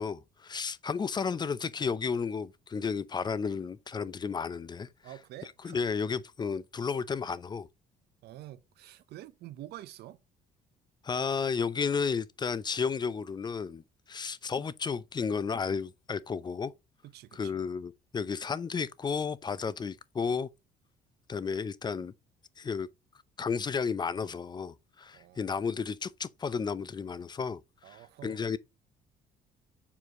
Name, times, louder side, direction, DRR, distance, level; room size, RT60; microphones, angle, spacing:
voice 1, 0.0-4.9 5.6-7.7 11.0-13.8 14.1-16.7 17.3-20.5 21.3-22.1 22.6-22.9 23.4-27.6 27.9-28.6, left 5 dB, 25° left, 0.6 m, -32 dB
voice 2, 5.0-5.8 8.2-10.2 17.0-17.6 25.1-25.6 27.8-28.4, right 14 dB, 75° right, 0.8 m, -47 dB
7.1 x 4.5 x 2.9 m
cardioid pair, 110°, 17 cm